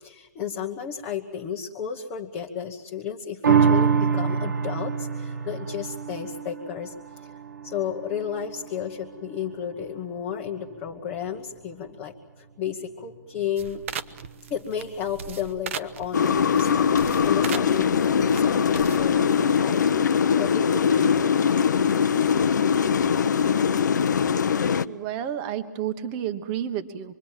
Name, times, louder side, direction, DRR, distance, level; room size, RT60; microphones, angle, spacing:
voice 1, 0.0-7.3 7.6-14.2 14.5-19.8 20.2-21.2 22.1-22.6 23.4-23.5, left 8 dB, 20° left, 0 dB, 1.2 m, -33 dB
sound 1, 3.4-10.1 10.6-10.7, right 6 dB, 85° right, 1.5 m, -26 dB
sound 2, 13.6-19.2, right 7 dB, 45° right, 1.0 m, -39 dB
sound 3, 16.1-24.9, left 7 dB, 75° left, 0.9 m, -21 dB
voice 2, 24.8-27.2, right 10 dB, 20° right, 10 dB, 1.2 m, -31 dB
25.5 x 22.5 x 7.4 m, 1.2 s
hypercardioid pair, 165°, 10 cm